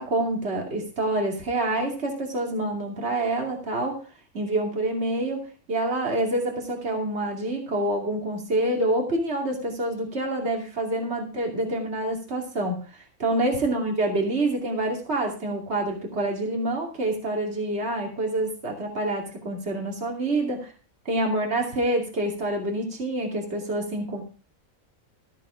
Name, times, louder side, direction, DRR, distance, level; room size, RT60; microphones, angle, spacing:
voice 1, 0.0-4.0 4.3-20.6 21.1-24.2, right 1 dB, 50° right, 0 dB, 2.9 m, -27 dB
14.0 x 7.5 x 5.0 m, 0.38 s
omnidirectional pair, 1.4 m